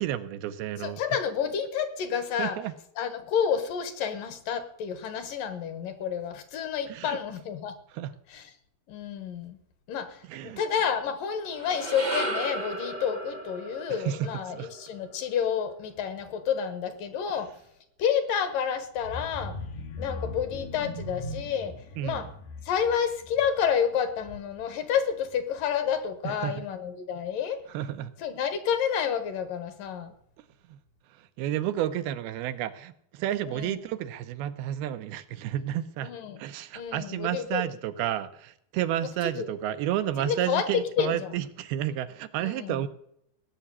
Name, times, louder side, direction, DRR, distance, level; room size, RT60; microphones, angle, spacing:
voice 1, 0.0-1.0 2.4-2.7 6.9-7.2 7.9-8.1 10.3-10.6 14.1-14.2 14.5-14.7 22.0-22.2 26.2-26.7 27.7-28.1 30.7-30.8 31.4-36.1 36.4-42.9, right 12 dB, 85° right, 11 dB, 2.8 m, -31 dB
voice 2, 0.8-2.6 3.0-7.8 8.3-8.5 8.9-9.6 9.9-17.5 18.0-19.6 20.0-21.8 22.0-22.3 22.6-27.6 28.2-30.1 33.5-33.8 36.0-36.4 36.8-37.7 39.0-39.5 40.2-40.7 41.0-41.4 42.4-42.9, left 7 dB, 65° left, 11 dB, 2.8 m, -29 dB
sound 1, 11.4-15.8, right 2 dB, 55° right, 0.4 m, -35 dB
sound 2, 19.0-24.7 25.1-25.4 25.7-25.8, left 2 dB, 80° left, 4.1 m, -40 dB
18.0 x 7.2 x 9.8 m, 0.71 s
omnidirectional pair, 4.5 m